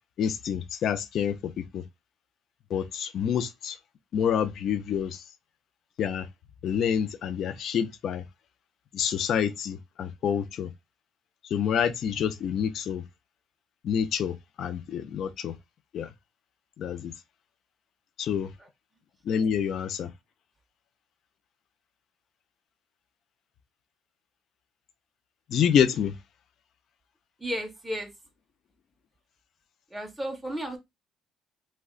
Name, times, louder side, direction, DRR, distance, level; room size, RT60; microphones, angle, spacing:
voice 1, 0.2-1.8 2.7-3.8 4.1-5.2 6.0-6.3 6.6-8.2 8.9-10.7 11.5-13.0 13.8-15.5 15.9-16.1 16.8-17.1 18.2-18.5 19.3-20.1 25.5-26.1, left 8 dB, 55° left, 0.3 m, -27 dB
voice 2, 27.4-28.1 29.9-30.8, equal, ahead, 0.5 m, -33 dB
2.4 x 2.1 x 3.6 m
cardioid pair, 135°, 0 cm